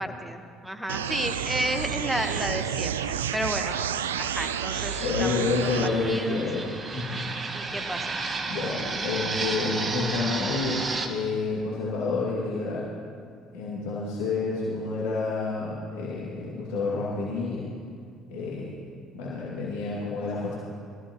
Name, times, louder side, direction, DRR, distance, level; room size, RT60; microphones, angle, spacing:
voice 1, 0.0-3.8 4.2-6.4 7.5-8.2, equal, 5° right, 7 dB, 1.2 m, -32 dB
sound 1, 0.9-5.9, right 9 dB, 80° right, 0.4 m, -30 dB
Fixed-wing aircraft airplane, 4.7-11.1, right 3 dB, 35° right, 1.5 m, -32 dB
voice 2, 5.0-7.2 8.5-12.9 13.5-17.6 18.3-18.7 19.1-20.5, left 3 dB, 70° left, -6 dB, 2.4 m, -29 dB
22.5 x 15.0 x 3.1 m, 2.2 s
hypercardioid pair, 55°, 0 cm